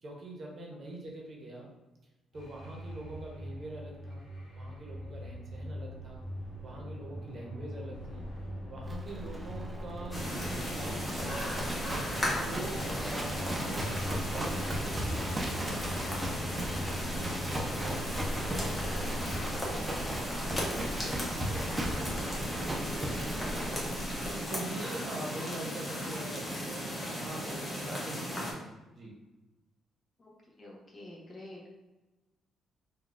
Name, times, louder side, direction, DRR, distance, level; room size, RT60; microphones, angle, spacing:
voice 1, 0.0-1.7 2.3-4.2 4.5-6.2 6.6-8.2 8.7-11.5 12.3-16.5 16.8-19.3 19.6-23.4 24.5-28.7 28.9-29.1, right 2 dB, 50° right, -1 dB, 0.8 m, -45 dB
sound 1, 2.3-19.9, equal, 75° left, 1.0 m, -42 dB
Livestock farm animals working animals, 8.9-24.4, right 1 dB, 20° right, 0.6 m, -37 dB
sound 2, 10.1-28.5, equal, 20° left, 1.0 m, -36 dB
voice 2, 30.6-31.7, left 1 dB, 40° left, -2 dB, 0.8 m, -48 dB
3.9 x 2.3 x 2.5 m, 1.1 s
cardioid pair, 90°, 0 cm